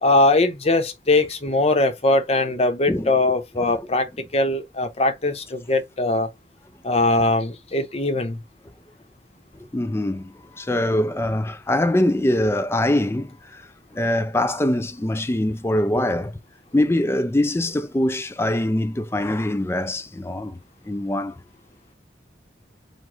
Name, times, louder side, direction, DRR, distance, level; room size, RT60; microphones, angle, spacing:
voice 1, 0.0-6.3 6.8-8.4, left 2 dB, 35° left, 0.8 m, -21 dB
voice 2, 9.7-13.3 14.0-16.3 16.7-20.6 20.9-21.3, left 1 dB, 15° left, 0.4 m, -23 dB
4.8 x 2.2 x 4.0 m
head